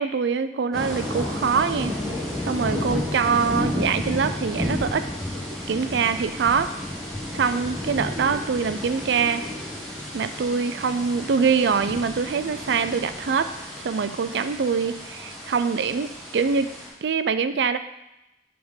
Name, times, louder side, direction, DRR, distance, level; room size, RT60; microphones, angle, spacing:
voice 1, 0.0-1.9 2.4-5.1 5.7-6.7 7.3-9.4 10.1-13.5 13.8-16.7 17.0-17.8, right 5 dB, 75° right, 11 dB, 0.4 m, -24 dB
sound 1, 0.7-16.9, left 1 dB, 5° left, 1.6 m, -32 dB
5.8 x 3.6 x 5.6 m, 0.92 s
head